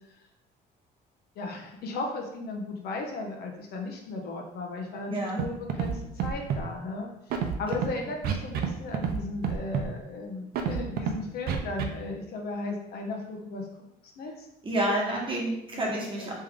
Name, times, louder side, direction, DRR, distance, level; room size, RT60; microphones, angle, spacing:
voice 1, 1.4-13.7 14.0-14.5 15.7-16.3, left 2 dB, 65° left, 1 dB, 0.8 m, -36 dB
voice 2, 5.1-5.4 7.7-7.9 14.6-16.3, right 1 dB, 30° right, -3 dB, 1.2 m, -29 dB
Scratching (performance technique), 5.4-5.5 5.7-5.9 6.2-6.6 7.3-7.9 8.2-8.7 8.9-9.2 9.4-9.9 10.5-11.1 11.5-11.8, right 8 dB, 65° right, 0.6 m, -28 dB
3.4 x 3.2 x 3.7 m, 0.84 s
cardioid pair, 110°, 17 cm